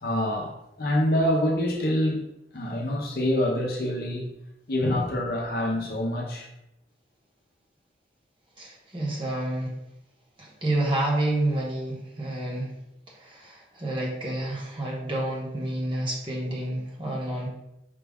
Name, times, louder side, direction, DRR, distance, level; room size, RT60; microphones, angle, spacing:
voice 1, 0.0-2.2 2.5-4.3 4.7-6.5, left 1 dB, 55° left, 1 dB, 0.6 m, -26 dB
voice 2, 8.6-9.8 10.4-12.7 13.1-17.5, right 1 dB, 25° right, -3 dB, 0.9 m, -29 dB
5.0 x 2.3 x 3.4 m, 0.86 s
head